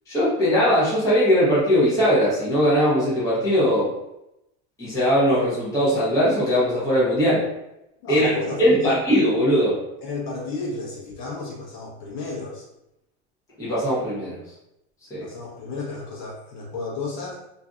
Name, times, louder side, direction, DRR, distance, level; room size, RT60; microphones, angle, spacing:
voice 1, 0.1-3.9 4.8-7.5 8.1-8.3 8.6-9.8 13.6-14.4 15.1-15.3, equal, 10° left, -9 dB, 0.8 m, -20 dB
voice 2, 8.0-9.0 10.0-12.7 15.2-17.4, left 3 dB, 50° left, -4 dB, 0.7 m, -32 dB
2.6 x 2.6 x 2.3 m, 0.87 s
supercardioid pair, 170°, 31 cm